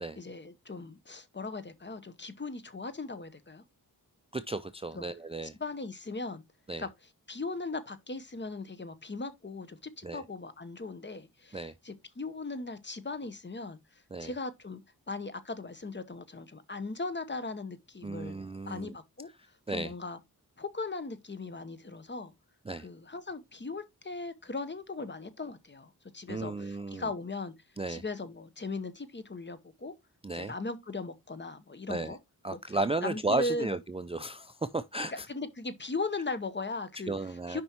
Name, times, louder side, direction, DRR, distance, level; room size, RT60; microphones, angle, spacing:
voice 1, 0.2-3.6 4.9-5.1 5.6-6.4 6.8-6.9 7.3-14.8 15.1-18.3 18.7-19.3 19.7-20.2 20.6-22.3 22.8-27.5 27.9-29.9 30.3-32.2 32.5-32.6 33.0-33.7 35.1-37.1 37.5-37.6, left 3 dB, 30° left, 0.9 m, -38 dB
voice 2, 4.3-5.5 6.7-6.9 10.0-10.2 11.5-11.7 14.1-14.3 18.0-19.0 19.7-19.9 22.7-22.9 26.3-27.1 27.8-28.0 30.2-30.5 31.9-32.2 32.4-35.3 37.1-37.6, right 2 dB, 15° right, 0.4 m, -34 dB
9.2 x 5.3 x 2.9 m
wide cardioid pair, 90°, 37 cm